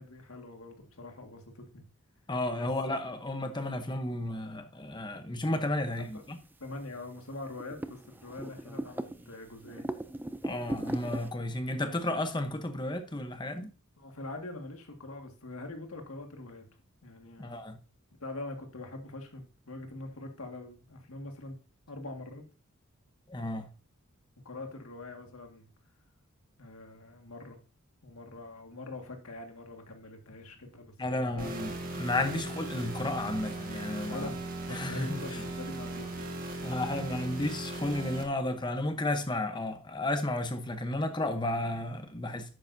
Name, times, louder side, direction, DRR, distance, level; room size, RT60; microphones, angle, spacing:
voice 1, 0.0-1.8 2.6-2.7 5.9-6.2 6.6-9.9 14.0-16.7 17.0-17.6 18.2-21.6 21.9-22.5 24.5-25.7 26.6-27.6 28.0-31.5 34.1-36.5 36.8-36.9, left 2 dB, 75° left, 1.9 m, -44 dB
voice 2, 2.3-6.4 10.4-13.7 17.4-17.8 23.3-23.7 31.0-31.7 32.0-34.3 34.7-35.2 36.6-42.5, left 1 dB, 20° left, 0.9 m, -33 dB
sound 1, 6.2-6.3 6.4-7.0 7.3-9.3 9.6-11.3, right 1 dB, 10° right, 0.4 m, -37 dB
sound 2, 31.4-38.2, right 2 dB, 40° right, 1.6 m, -38 dB
11.0 x 8.9 x 2.7 m
head